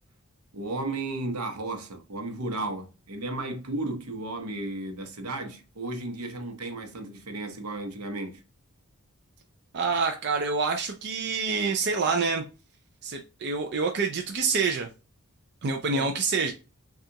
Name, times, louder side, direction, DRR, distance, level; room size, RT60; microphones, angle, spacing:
voice 1, 0.5-8.4 15.9-16.1, right 2 dB, 75° right, 0.8 m, -34 dB
voice 2, 9.7-12.4 13.0-14.9 15.6-16.5, right 4 dB, 50° right, 0.5 m, -27 dB
6.2 x 2.4 x 2.8 m
head